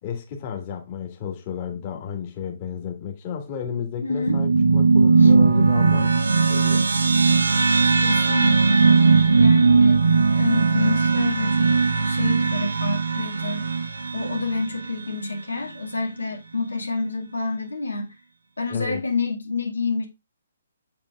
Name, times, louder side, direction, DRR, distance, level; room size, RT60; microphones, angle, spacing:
voice 1, 0.0-6.8 18.7-19.0, left 7 dB, 35° left, 1.9 m, -33 dB
voice 2, 4.0-4.4 5.2-5.3 7.8-10.0 10.3-11.7 12.0-13.7 14.1-18.2 18.6-20.1, left 3 dB, 85° left, 1.9 m, -28 dB
sound 1, 4.3-15.0, right 4 dB, 75° right, 1.0 m, -18 dB
7.3 x 5.4 x 2.4 m
figure-of-eight pair, 135°, 0 cm